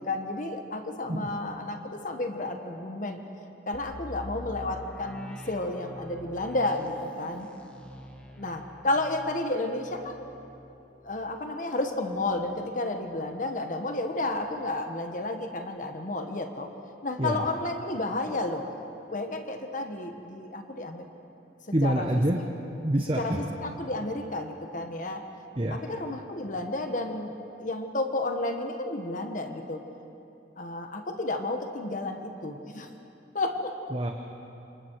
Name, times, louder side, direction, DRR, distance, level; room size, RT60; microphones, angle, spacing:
voice 1, 0.0-3.2 3.7-7.5 8.4-10.3 11.0-16.7 17.0-18.6 19.1-21.0 21.8-22.1 23.2-25.2 25.7-29.8 30.6-32.9 33.3-33.7, left 2 dB, 45° left, 5 dB, 1.4 m, -31 dB
sound 1, 3.7-13.5 13.8-13.9 14.4-14.7, equal, 5° left, 1.7 m, -46 dB
voice 2, 21.7-22.4 22.8-23.5 25.6-25.8 33.9-34.1, right 1 dB, 30° right, 3 dB, 1.1 m, -26 dB
28.5 x 26.5 x 4.8 m, 2.8 s
head